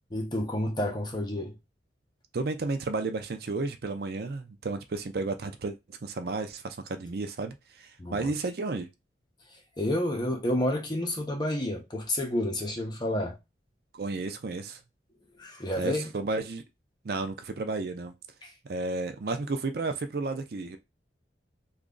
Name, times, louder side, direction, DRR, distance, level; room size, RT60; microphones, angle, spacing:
voice 1, 0.1-1.6 8.0-8.3 9.8-13.4 15.4-16.1 18.4-18.5, left 1 dB, 25° left, 0.9 m, -30 dB
voice 2, 2.3-8.9 13.9-14.8 15.8-16.6 17.0-18.1 18.6-20.8, right 3 dB, 60° right, 0.5 m, -32 dB
3.0 x 2.4 x 3.8 m
head